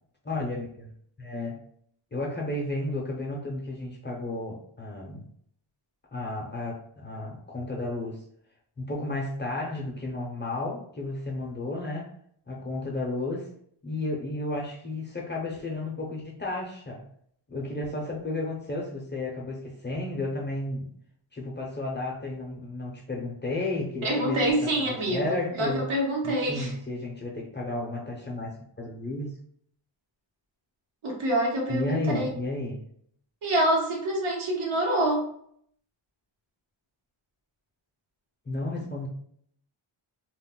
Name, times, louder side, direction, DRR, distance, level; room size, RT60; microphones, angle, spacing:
voice 1, 0.2-0.9 1.2-1.6 2.1-5.2 6.1-8.2 8.8-12.1 12.5-13.5 13.8-17.0 17.5-20.9 21.3-25.8 26.2-29.3 31.7-32.8 38.5-39.1, left 2 dB, 25° left, -1 dB, 0.4 m, -33 dB
voice 2, 24.0-25.3 25.6-26.7 31.0-32.3 33.4-35.3, right 1 dB, 80° right, -1 dB, 1.0 m, -26 dB
2.3 x 2.0 x 3.6 m, 0.64 s
wide cardioid pair, 145°, 49 cm